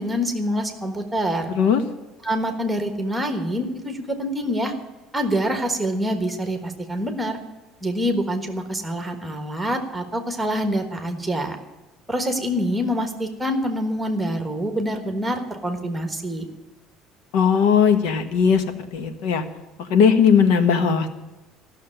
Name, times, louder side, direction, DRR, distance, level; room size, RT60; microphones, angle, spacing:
voice 1, 0.0-1.5 2.2-4.7 5.1-7.4 7.8-11.6 12.1-16.5, equal, 5° right, 5 dB, 1.4 m, -26 dB
voice 2, 1.5-1.8 17.3-18.6 18.9-19.4 19.9-21.1, left 7 dB, 85° left, 9 dB, 1.3 m, -18 dB
14.5 x 6.6 x 9.8 m, 1.1 s
cardioid pair, 175°, 0 cm